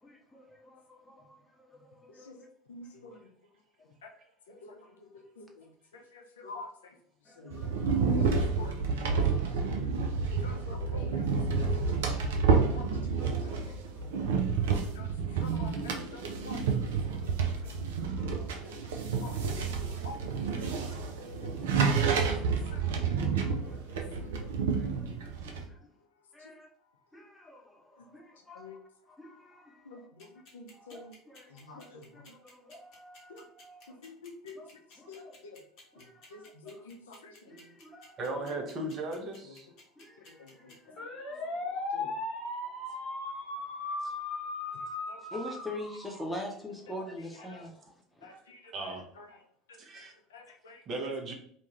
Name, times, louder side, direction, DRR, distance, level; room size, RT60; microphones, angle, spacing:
voice 1, 0.0-2.5 3.1-3.2 7.2-8.5 9.1-9.7 10.3-10.6 11.6-11.7 13.2-14.8 15.5-15.6 16.3-16.5 17.7-17.9 18.2-19.3 19.9-20.0 20.7-20.8 22.8-24.1 24.8-25.9 26.3-26.7 27.1-28.8 29.2-30.1 30.7-33.9 34.6-34.7 35.0-35.4 35.9-36.8 37.5-38.2 40.0-41.9 42.6-44.2 44.6-45.0 45.3-48.3 50.4-50.5, left 1 dB, 5° left, 0 dB, 0.8 m, -47 dB
voice 2, 2.7-3.2 4.5-4.9 5.4-5.5 5.9-6.9 7.4-7.7 8.1-11.2 12.1-12.2 12.7-12.8 13.1-13.6 14.7-16.7 17.2-17.5 19.2-19.4 19.8-21.0 21.4-21.5 22.4-22.8 24.2-24.3 28.5-28.8 29.9-30.3 30.5-31.1 31.5-32.3 33.3-33.4 33.9-34.6 35.1-35.6 36.0-37.7 38.4-38.5 39.5-39.6 40.4-40.7 41.9-42.1 45.1-45.6 47.4-47.7 48.2-49.4 49.7-50.8, left 3 dB, 75° left, 3 dB, 0.4 m, -49 dB
sound 1, 7.5-25.7, right 5 dB, 70° right, 0.4 m, -29 dB
sound 2, 30.2-46.7, left 2 dB, 55° left, 1.0 m, -38 dB
voice 3, 38.2-39.7 44.0-44.1 48.3-48.4 48.7-49.0 49.8-50.1 50.9-51.3, right 2 dB, 45° right, 1 dB, 0.7 m, -36 dB
2.5 x 2.3 x 3.1 m, 0.63 s
figure-of-eight pair, 70°, 0 cm